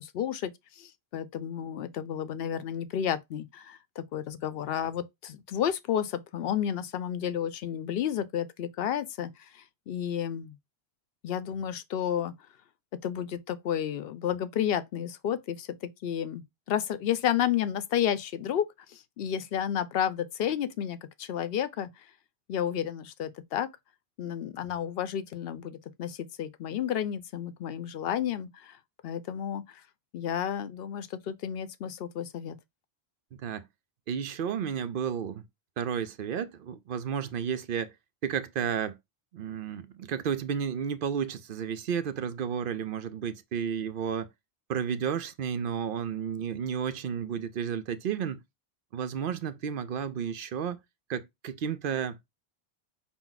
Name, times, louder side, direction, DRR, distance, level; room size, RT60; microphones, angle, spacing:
voice 1, 0.0-10.6 11.2-12.3 13.0-21.9 22.5-23.7 24.2-28.8 29.0-29.8 30.1-32.6, left 9 dB, 70° left, 0.8 m, -31 dB
voice 2, 33.3-33.6 34.1-35.4 35.8-37.9 38.2-39.0 39.3-44.3 44.7-48.4 48.9-50.8 51.1-52.2, right 8 dB, 65° right, 0.7 m, -32 dB
5.8 x 2.1 x 3.9 m
omnidirectional pair, 1.1 m